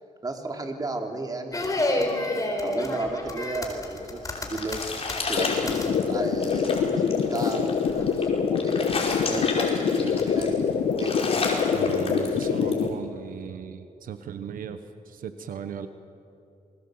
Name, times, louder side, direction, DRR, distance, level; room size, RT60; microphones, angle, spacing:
voice 1, 0.2-2.1 2.6-4.8 5.3-8.9 9.2-11.3, right 2 dB, 25° right, 3 dB, 3.2 m, -33 dB
sound 1, 1.5-5.9 6.2-6.7 7.4-7.6 7.9-8.3 8.7-9.3 9.9-10.6, left 1 dB, 25° left, 4.1 m, -30 dB
sound 2, 4.0-12.9, left 3 dB, 45° left, 5.1 m, -33 dB
sound 3, 5.4-12.9, left 6 dB, 85° left, 1.6 m, -25 dB
voice 2, 11.7-15.9, right 7 dB, 90° right, 9 dB, 1.1 m, -37 dB
27.5 x 21.5 x 8.0 m, 2.6 s
cardioid pair, 105°, 14 cm